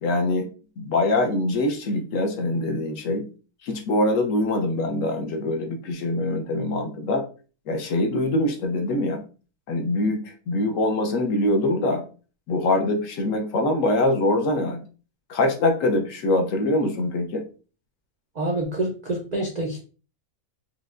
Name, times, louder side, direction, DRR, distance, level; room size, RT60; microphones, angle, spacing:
voice 1, 0.0-0.5 0.8-3.3 3.6-7.2 7.7-9.2 9.7-12.0 12.5-14.8 15.3-17.4, left 2 dB, 70° left, 4 dB, 0.9 m, -23 dB
voice 2, 18.3-19.8, right 1 dB, 70° right, 0 dB, 0.4 m, -27 dB
4.6 x 2.1 x 2.4 m, 0.37 s
omnidirectional pair, 1.6 m